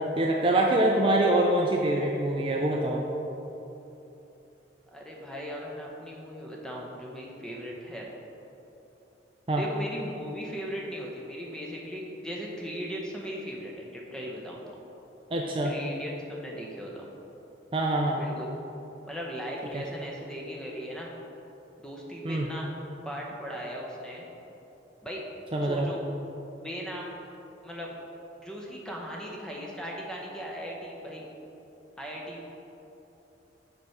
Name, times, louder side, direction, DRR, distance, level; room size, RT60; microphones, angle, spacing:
voice 1, 0.0-3.0 9.5-9.6 15.3-15.7 17.7-18.2 19.7-19.8 22.2-22.5 25.5-25.9, right 1 dB, 30° right, 0 dB, 0.4 m, -25 dB
voice 2, 4.9-8.1 9.6-14.8 15.6-17.1 18.2-18.5 19.1-21.1 21.8-22.7 23.0-24.3 25.0-25.2 25.6-26.0 26.6-27.3 27.6-27.9 28.4-31.2 32.0-32.5, equal, 5° left, -2 dB, 0.8 m, -38 dB
6.1 x 4.5 x 5.5 m, 3.0 s
head